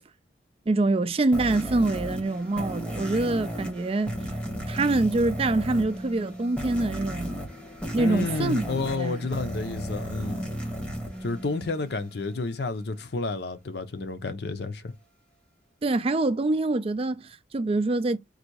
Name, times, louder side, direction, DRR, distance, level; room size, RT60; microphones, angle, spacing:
voice 1, 0.7-4.1 4.7-7.3 7.9-8.7 8.9-9.3 15.8-18.2, right 2 dB, 35° right, 0.4 m, -25 dB
sound 1, 1.3-12.1, equal, 5° left, 1.1 m, -34 dB
voice 2, 8.0-10.5 11.2-14.9, left 3 dB, 65° left, 0.6 m, -30 dB
3.9 x 2.7 x 4.6 m
head